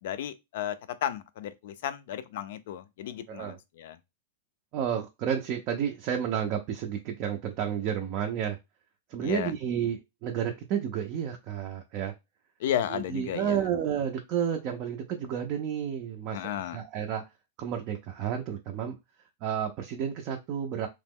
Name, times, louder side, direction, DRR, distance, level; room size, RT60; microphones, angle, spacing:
voice 1, 0.0-4.0 9.2-9.5 12.6-13.7 16.3-16.8, left 10 dB, 60° left, 0.4 m, -33 dB
voice 2, 4.7-8.6 9.1-12.1 12.9-16.4 16.7-17.2 17.6-19.0 19.4-20.9, right 8 dB, 40° right, 0.4 m, -31 dB
2.9 x 2.0 x 3.5 m
supercardioid pair, 150°, 0 cm